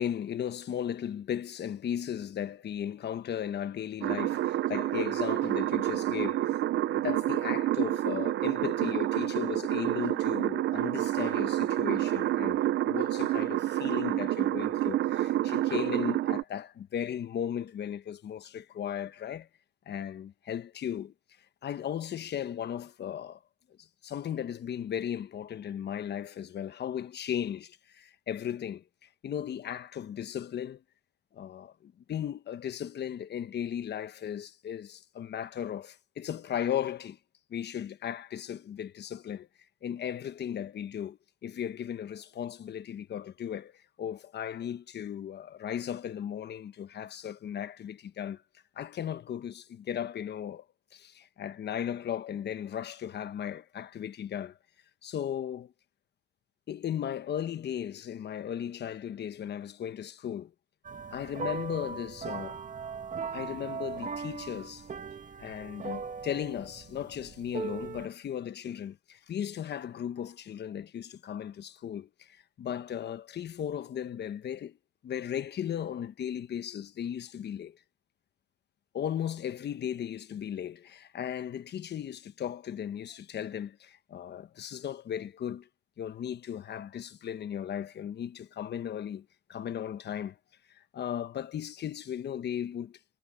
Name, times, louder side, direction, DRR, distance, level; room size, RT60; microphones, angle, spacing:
voice 1, 0.0-6.6 6.9-19.5 19.9-21.1 21.6-23.4 23.8-28.8 29.2-30.8 31.3-37.2 37.5-39.5 39.8-48.4 48.8-50.6 50.9-54.6 55.0-55.7 56.7-60.5 61.1-62.6 63.3-64.9 65.4-74.8 75.0-77.8 78.9-85.7 86.0-90.4 90.7-93.0, left 9 dB, 60° left, 1.1 m, -36 dB
sound 1, 4.0-16.4, right 14 dB, 70° right, 0.6 m, -28 dB
sound 2, 60.8-68.1, right 5 dB, 40° right, 2.0 m, -39 dB
cardioid pair, 90°, 20 cm